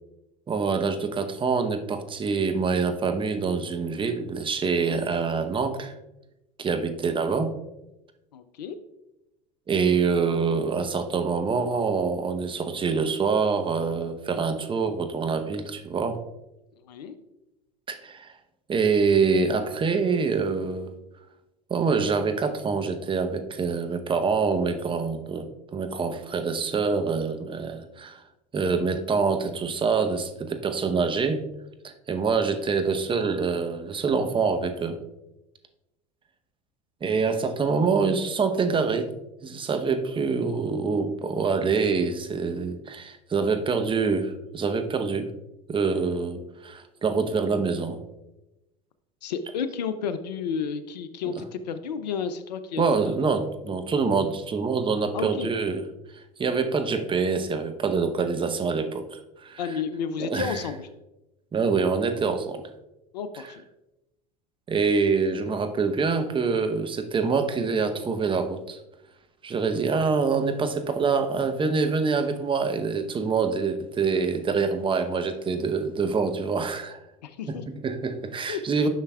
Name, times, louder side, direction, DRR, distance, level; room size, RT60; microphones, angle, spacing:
voice 1, 0.5-5.9 6.6-7.5 9.7-16.2 17.9-18.3 18.7-20.9 21.7-28.2 28.5-31.5 31.8-35.0 37.0-39.1 39.4-45.3 45.7-48.0 51.3-51.4 52.8-55.9 56.1-59.8 60.2-60.6 61.5-62.6 63.3-63.4 64.7-68.8 69.4-77.0 77.5-77.6 77.8-78.9, right 5 dB, 25° right, 7 dB, 0.8 m, -25 dB
voice 2, 8.3-8.8 16.8-17.2 49.2-53.2 55.1-55.5 59.6-60.9 63.1-63.6 77.2-77.6 78.5-78.6, left 6 dB, 80° left, 11 dB, 0.5 m, -32 dB
10.0 x 5.7 x 2.3 m, 0.95 s
hypercardioid pair, 80°, 21 cm